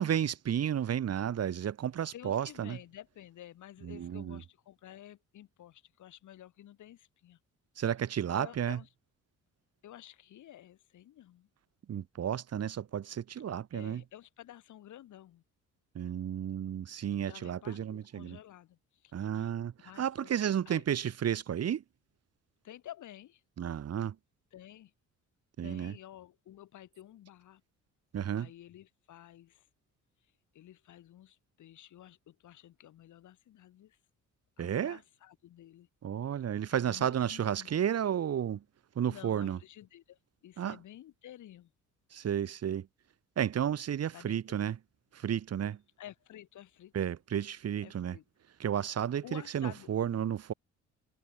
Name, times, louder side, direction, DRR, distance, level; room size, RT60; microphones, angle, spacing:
voice 1, 0.0-2.8 3.8-4.4 7.8-8.8 11.9-14.0 16.0-18.4 19.1-21.8 23.6-24.2 25.6-25.9 28.1-28.5 34.6-35.0 36.0-38.6 39.0-39.6 40.6-40.8 42.1-42.9 43.4-44.8 45.1-45.8 46.9-48.2 48.6-50.5, right 9 dB, 55° right, 1.8 m, -32 dB
voice 2, 2.1-7.4 8.3-8.9 9.8-11.5 13.7-15.4 17.2-19.5 19.8-20.8 22.6-23.4 24.5-24.9 25.6-27.6 28.3-29.7 30.2-34.0 34.6-35.9 36.7-37.8 39.1-41.7 44.1-44.7 46.0-46.9 47.8-48.2 49.2-50.0, left 12 dB, 75° left, 6.7 m, -52 dB
cardioid pair, 90°, 30 cm